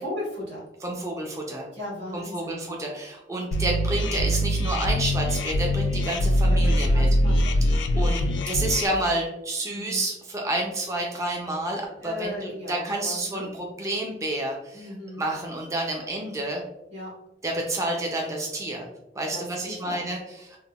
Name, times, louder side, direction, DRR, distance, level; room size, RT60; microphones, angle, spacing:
voice 1, 0.0-0.7 1.7-2.7 6.5-7.6 7.9-8.1 9.7-10.1 12.0-13.5 14.7-15.2 16.9-17.2 19.3-20.1, left 1 dB, 90° right, -5 dB, 1.3 m, -36 dB
voice 2, 0.8-1.7 2.1-7.1 7.9-12.4 12.7-14.9 15.2-16.6 17.4-18.9 19.1-20.6, right 1 dB, 20° right, 0 dB, 0.4 m, -29 dB
sound 1, 3.5-8.9, equal, 85° left, 0.3 m, -23 dB
3.5 x 2.1 x 2.3 m, 0.85 s
head